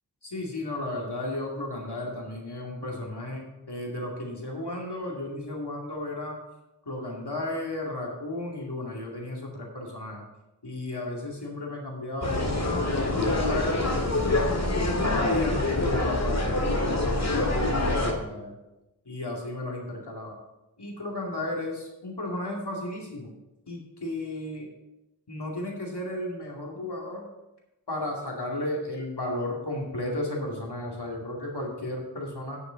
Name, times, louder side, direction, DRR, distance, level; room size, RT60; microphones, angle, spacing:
voice 1, 0.2-6.4 6.9-10.2 10.6-14.5 15.0-18.6 19.1-20.4 20.8-23.3 23.7-24.7 25.3-27.2 27.9-32.6, left 1 dB, 75° left, -1 dB, 2.5 m, -34 dB
sound 1, 12.2-18.1, left 2 dB, 40° left, 1.9 m, -25 dB
9.8 x 6.7 x 5.7 m, 0.96 s
wide cardioid pair, 45°, 40 cm